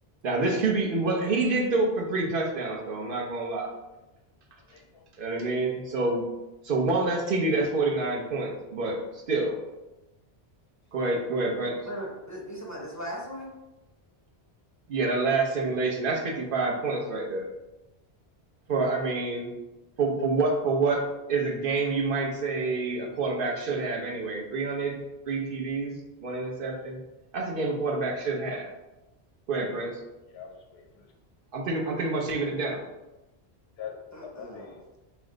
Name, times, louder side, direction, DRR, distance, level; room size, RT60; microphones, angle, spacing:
voice 1, 0.2-3.7 5.2-6.2 6.6-9.6 10.9-11.8 14.9-17.5 18.7-19.5 20.0-21.0 21.3-27.0 27.3-28.7 29.5-30.0 31.5-32.8, right 3 dB, 60° right, 1 dB, 0.9 m, -27 dB
voice 2, 4.7-5.1 30.3-31.1 33.8-34.8, left 7 dB, 80° left, 2 dB, 1.0 m, -43 dB
voice 3, 11.9-13.5 34.1-34.7, equal, 20° left, -3 dB, 0.6 m, -38 dB
5.1 x 2.0 x 3.7 m, 1.0 s
omnidirectional pair, 1.1 m